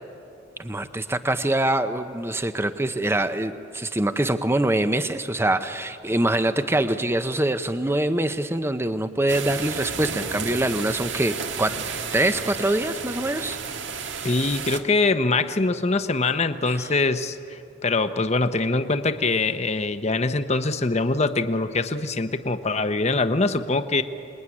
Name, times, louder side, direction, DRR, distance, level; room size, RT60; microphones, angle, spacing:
voice 1, 0.6-11.8 12.1-13.6, right 1 dB, 15° right, 10 dB, 0.8 m, -24 dB
sound 1, 9.3-14.8, right 6 dB, 80° right, 1.7 m, -32 dB
voice 2, 14.2-24.0, left 3 dB, 35° left, 9 dB, 0.9 m, -23 dB
27.0 x 21.5 x 9.9 m, 2.6 s
head